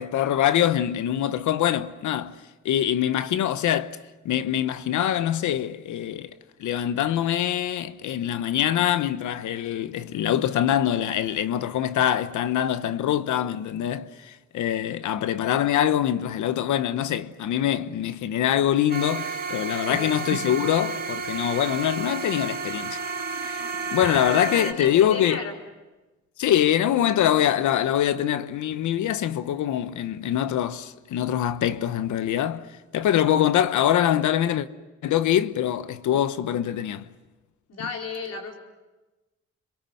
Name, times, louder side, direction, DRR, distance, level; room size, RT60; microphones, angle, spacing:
voice 1, 0.0-2.4 2.6-4.0 4.2-6.3 6.6-23.0 23.4-23.6 23.9-25.4 26.4-32.7 32.9-34.7 35.0-37.1, left 11 dB, 75° left, 1.1 m, -24 dB
sound 1, 18.9-24.7, right 4 dB, 35° right, 4.8 m, -31 dB
voice 2, 19.9-20.2 24.0-25.6 37.7-38.5, left 4 dB, 55° left, 4.5 m, -34 dB
27.0 x 22.5 x 7.8 m
cardioid pair, 90°, 30 cm